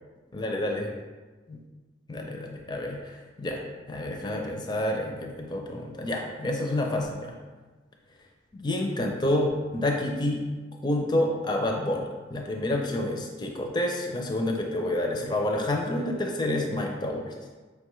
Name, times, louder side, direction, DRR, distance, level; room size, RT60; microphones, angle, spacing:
voice 1, 0.3-0.9 1.5-1.6 2.1-3.6 3.9-7.3 8.5-10.4 10.8-17.3, left 1 dB, 25° left, 1 dB, 0.4 m, -29 dB
5.1 x 2.3 x 3.0 m, 1.3 s
head